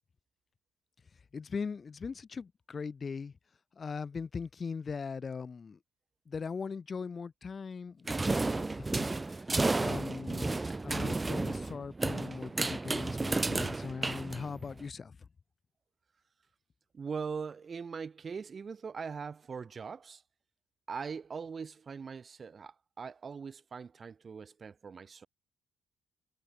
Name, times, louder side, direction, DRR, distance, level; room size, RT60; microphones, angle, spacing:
voice 1, 1.3-3.3 3.8-5.8 6.3-9.3 9.8-15.1, left 5 dB, 40° left, 1.2 m, -40 dB
sound 1, 8.1-14.8, right 3 dB, 20° right, 0.3 m, -32 dB
voice 2, 16.9-20.2 20.9-25.3, right 5 dB, 40° right, 3.1 m, -41 dB
cardioid pair, 90°, 0 cm